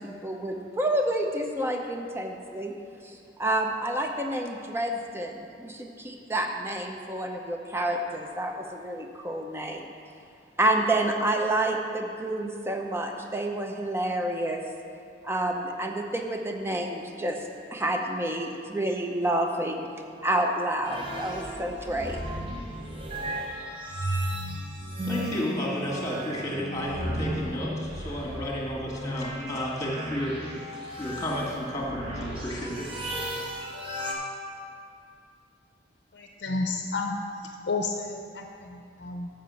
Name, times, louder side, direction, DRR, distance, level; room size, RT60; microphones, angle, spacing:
voice 1, 0.0-2.7 3.0-9.9 10.6-14.6 15.2-17.4 17.7-19.9 20.2-22.2, right 1 dB, 15° right, 3 dB, 0.6 m, -29 dB
sound 1, 20.8-34.1, equal, 30° right, 1.2 m, -35 dB
voice 2, 25.0-30.3 31.0-32.9, equal, 20° left, -4 dB, 1.8 m, -32 dB
voice 3, 36.1-37.2 37.7-39.3, left 3 dB, 60° left, 2 dB, 0.6 m, -31 dB
7.3 x 5.7 x 7.5 m, 2.4 s
head